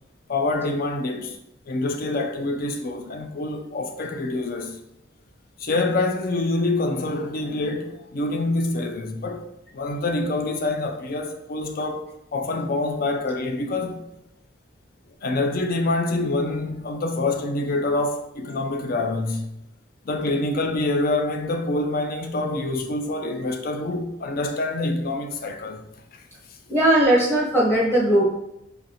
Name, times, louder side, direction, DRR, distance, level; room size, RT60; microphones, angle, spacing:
voice 1, 0.3-1.4 1.7-4.8 5.6-9.5 9.7-14.0 15.2-19.5 20.0-25.8, left 2 dB, 50° left, 0.4 m, -26 dB
voice 2, 26.7-28.2, right 1 dB, 15° left, 0.9 m, -18 dB
4.0 x 3.1 x 2.8 m
head